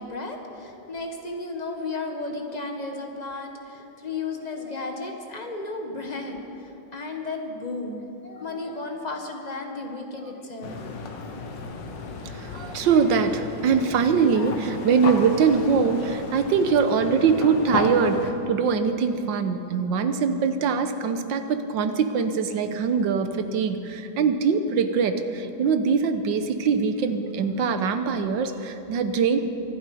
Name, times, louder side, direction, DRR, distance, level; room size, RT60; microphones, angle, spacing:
voice 1, 0.0-10.8, left 3 dB, 25° left, 2 dB, 1.3 m, -34 dB
sound 1, 10.6-18.3, left 4 dB, 65° left, 1.8 m, -34 dB
voice 2, 12.2-29.4, right 5 dB, 70° right, 9 dB, 1.5 m, -23 dB
24.0 x 11.5 x 4.9 m, 2.9 s
omnidirectional pair, 2.1 m